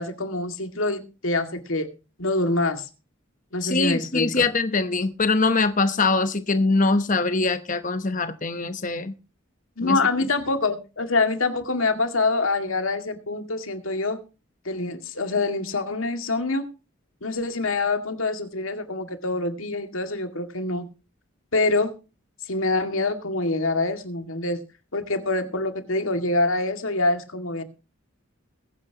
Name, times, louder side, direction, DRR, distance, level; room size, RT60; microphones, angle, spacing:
voice 1, 0.0-1.9 2.2-2.9 3.5-4.5 9.8-14.2 14.7-16.7 17.2-20.9 21.5-22.0 22.5-24.6 24.9-27.6, left 2 dB, 75° left, 8 dB, 2.2 m, -25 dB
voice 2, 3.6-9.1 9.8-10.0, left 3 dB, 40° left, 10 dB, 1.0 m, -23 dB
22.0 x 9.7 x 2.9 m, 0.31 s
head